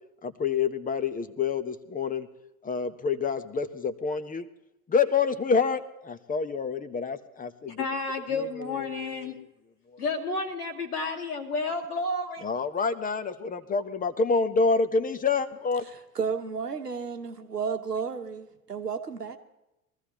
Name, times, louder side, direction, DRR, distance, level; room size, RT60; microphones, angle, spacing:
voice 1, 0.2-2.3 2.6-4.4 4.9-7.8 8.3-9.4 12.4-15.8, left 5 dB, 20° left, 0.9 m, -28 dB
voice 2, 7.7-9.4 10.0-12.4, left 3 dB, 75° left, 2.5 m, -31 dB
voice 3, 16.1-19.4, right 6 dB, 90° right, 1.3 m, -32 dB
22.5 x 15.0 x 2.9 m
figure-of-eight pair, 80°, 46 cm